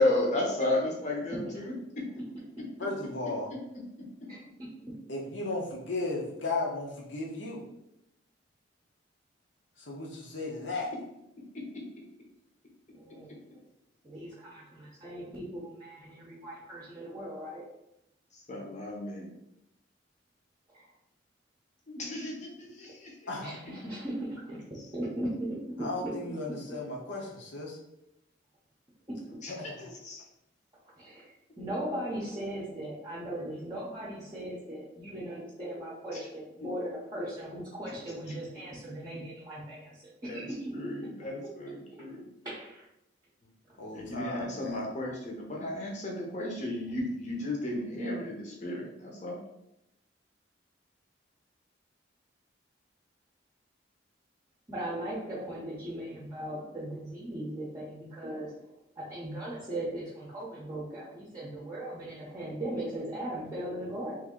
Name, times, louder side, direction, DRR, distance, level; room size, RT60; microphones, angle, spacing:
voice 1, 0.0-2.1 11.5-11.8 18.3-19.3 21.9-23.2 24.8-24.9 29.4-30.2 36.1-36.2 40.2-40.5 40.7-42.3 43.4-43.5 43.9-49.4, left 1 dB, 40° left, -1 dB, 0.8 m, -33 dB
voice 2, 2.8-3.5 5.1-7.7 9.8-10.9 23.3-23.5 25.8-27.8 29.5-29.9 43.8-44.8, left 2 dB, 75° left, -2 dB, 0.9 m, -35 dB
voice 3, 12.9-13.4 14.0-17.6 20.7-20.9 23.4-25.6 29.1-29.2 31.0-31.3 31.6-40.5 42.4-42.9 43.7-43.8 54.7-58.7 59.0-64.2, right 1 dB, 20° right, -6 dB, 0.7 m, -38 dB
3.1 x 2.7 x 3.7 m, 0.83 s
head